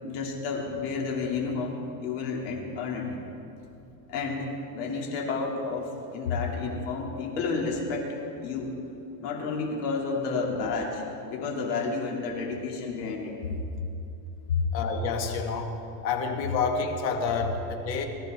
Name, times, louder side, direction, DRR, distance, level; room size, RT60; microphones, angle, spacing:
voice 1, 0.0-3.1 4.1-8.7 9.2-13.4 14.5-14.6, left 4 dB, 70° left, -1 dB, 3.0 m, -31 dB
voice 2, 14.7-15.8 16.0-18.0, left 5 dB, 90° left, 3 dB, 2.1 m, -28 dB
22.0 x 14.0 x 3.7 m, 2.8 s
supercardioid pair, 160°, 49 cm